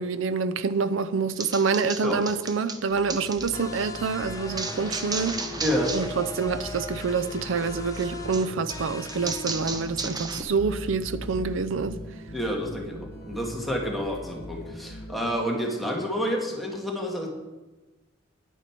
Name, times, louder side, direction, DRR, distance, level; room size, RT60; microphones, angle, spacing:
voice 1, 0.0-5.4 5.9-11.9, right 5 dB, 75° right, 0.5 m, -27 dB
sound 1, 1.3-3.5 4.6-6.1 6.4-6.8 7.9-10.4, right 3 dB, 20° right, 0.7 m, -34 dB
sound 2, 2.9-15.4, equal, 55° left, 1.5 m, -41 dB
sound 3, 3.5-9.5, left 3 dB, 20° left, 0.7 m, -39 dB
voice 2, 5.6-5.9 12.3-17.3, equal, ahead, 1.5 m, -29 dB
10.0 x 9.0 x 4.5 m
head